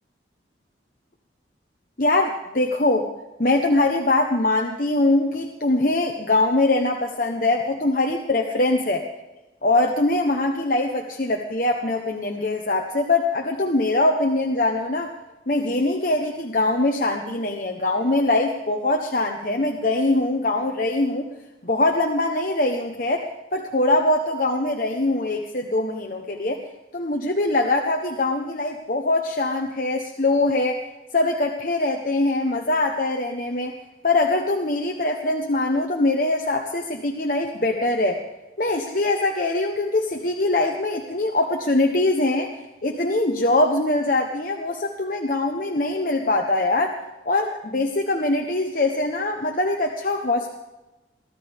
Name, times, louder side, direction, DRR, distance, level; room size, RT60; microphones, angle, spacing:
voice 1, 2.0-3.1 3.4-9.1 9.6-15.1 15.5-21.3 21.6-26.6 26.9-30.8 31.1-33.8 34.0-38.2 38.6-47.0 47.2-50.6, left 2 dB, 50° left, 2 dB, 1.1 m, -22 dB
23.5 x 15.0 x 3.6 m, 1.0 s
head